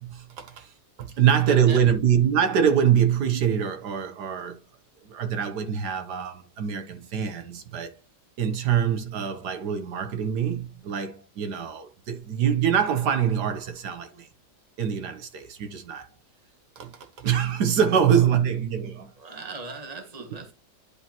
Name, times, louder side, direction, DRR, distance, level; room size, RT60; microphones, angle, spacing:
voice 1, 0.0-4.6 5.0-8.0 8.4-14.3 14.8-16.1 16.8-19.1, right 8 dB, 70° right, 1.4 m, -24 dB
voice 2, 1.1-1.8 18.1-18.2 19.2-20.5, right 3 dB, 25° right, 1.5 m, -40 dB
10.5 x 4.9 x 2.9 m
omnidirectional pair, 1.9 m